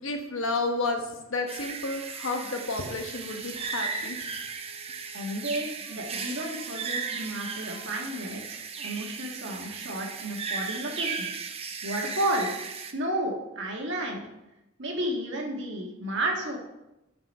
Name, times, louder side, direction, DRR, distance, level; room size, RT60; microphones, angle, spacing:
voice 1, 0.0-5.3 6.0-6.3 6.9-7.9, left 3 dB, 65° left, 4 dB, 1.1 m, -33 dB
sound 1, 1.5-12.9, right 5 dB, 30° right, 0.6 m, -36 dB
voice 2, 5.1-11.3 11.8-14.2 14.8-16.6, right 1 dB, 55° right, 0 dB, 1.7 m, -32 dB
9.3 x 5.3 x 5.5 m, 0.94 s
head